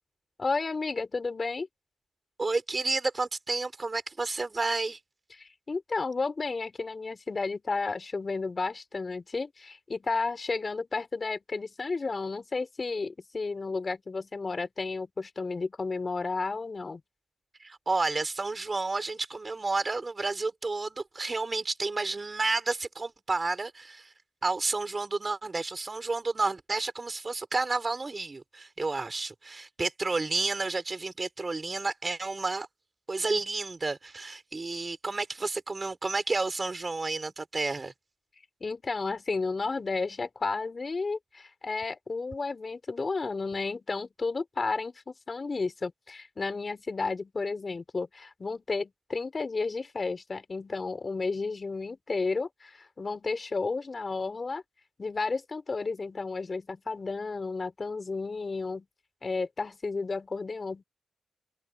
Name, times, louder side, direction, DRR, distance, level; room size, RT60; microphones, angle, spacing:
voice 1, 0.4-1.7 5.4-17.0 38.6-54.6 55.0-58.9 59.2-60.8, left 4 dB, 35° left, 4.4 m, -32 dB
voice 2, 2.4-5.0 17.6-24.1 24.4-32.7 33.1-37.9, right 3 dB, 30° right, 4.5 m, -31 dB
cardioid pair, 105°, 0 cm